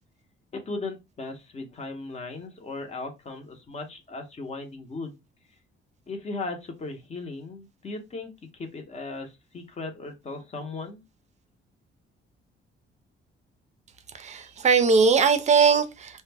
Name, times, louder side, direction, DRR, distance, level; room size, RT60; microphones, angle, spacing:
voice 1, 0.5-5.2 6.1-11.0, left 3 dB, 30° left, 0.7 m, -37 dB
voice 2, 14.2-16.2, right 5 dB, 35° right, 0.4 m, -20 dB
2.1 x 2.0 x 3.3 m
cardioid pair, 135°, 21 cm